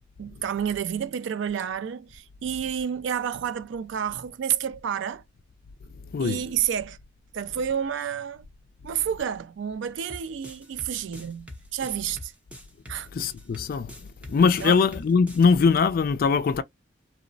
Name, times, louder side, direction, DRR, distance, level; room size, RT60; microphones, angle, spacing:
voice 1, 0.2-5.2 6.2-7.0 7.3-8.5 8.8-12.3 12.9-13.1 14.6-14.8, right 8 dB, 65° right, 0.3 m, -30 dB
sound 1, 10.1-15.5, left 1 dB, 5° right, 0.6 m, -43 dB
voice 2, 13.1-13.9 14.3-16.6, left 5 dB, 50° left, 0.3 m, -21 dB
2.9 x 2.0 x 2.5 m
head